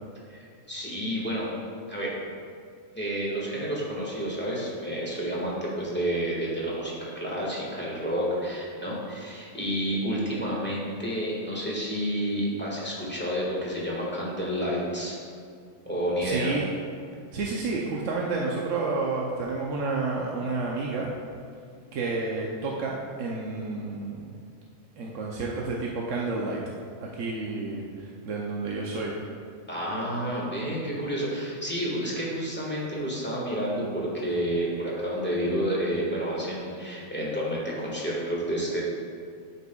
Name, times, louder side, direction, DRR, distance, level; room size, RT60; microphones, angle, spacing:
voice 1, 0.3-1.5 1.9-2.2 2.9-15.2 15.8-16.5 29.7-38.9, equal, 10° left, -6 dB, 1.4 m, -30 dB
voice 2, 16.2-16.7 17.3-21.1 21.9-24.4 25.0-26.6 27.1-29.1, right 3 dB, 75° right, -2 dB, 1.0 m, -30 dB
11.5 x 5.4 x 2.3 m, 2.3 s
omnidirectional pair, 1.3 m